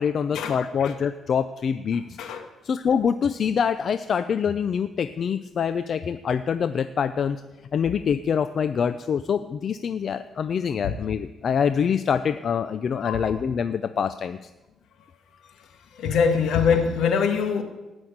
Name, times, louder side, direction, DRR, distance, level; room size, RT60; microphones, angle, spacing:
voice 1, 0.0-2.2 2.6-7.4 7.7-14.4, left 7 dB, 55° left, 11 dB, 0.6 m, -25 dB
voice 2, 16.0-17.6, left 6 dB, 80° left, 6 dB, 2.0 m, -23 dB
18.5 x 6.4 x 8.7 m, 1.1 s
cardioid pair, 90°, 0 cm